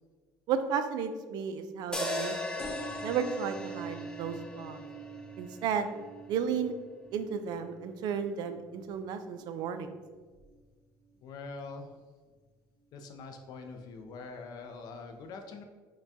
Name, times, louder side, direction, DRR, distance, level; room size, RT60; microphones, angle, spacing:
voice 1, 0.5-2.4 3.0-4.8 5.4-5.9 6.3-6.7 7.1-9.9, right 7 dB, 65° right, 9 dB, 0.4 m, -33 dB
sound 1, 1.9-6.2, left 2 dB, 10° left, 0.5 m, -38 dB
sound 2, 2.6-9.8 10.3-10.8 11.6-11.7 11.9-12.0 12.2-12.3, right 4 dB, 30° left, 0.9 m, -46 dB
voice 2, 11.2-11.9 12.9-15.6, left 4 dB, 60° left, 4 dB, 0.5 m, -44 dB
5.8 x 2.2 x 2.7 m, 1.4 s
cardioid pair, 115°, 8 cm